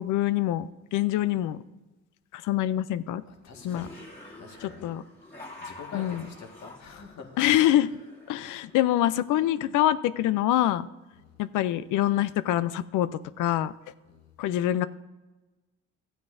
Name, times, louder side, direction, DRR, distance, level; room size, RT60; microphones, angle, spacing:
voice 1, 0.0-1.6 2.3-3.2 3.6-3.9 4.8-5.0 5.9-6.2 7.4-7.9 8.3-10.9 11.4-13.7 14.4-14.9, left 13 dB, 85° left, 15 dB, 0.5 m, -25 dB
voice 2, 3.3-3.9 4.4-4.9 5.6-7.4 11.2-11.4 14.1-14.3, left 5 dB, 65° left, 3 dB, 1.7 m, -45 dB
sound 1, 3.5-9.1, left 2 dB, 30° left, 3.0 m, -47 dB
14.0 x 9.2 x 2.6 m, 1.1 s
cardioid pair, 90°, 30 cm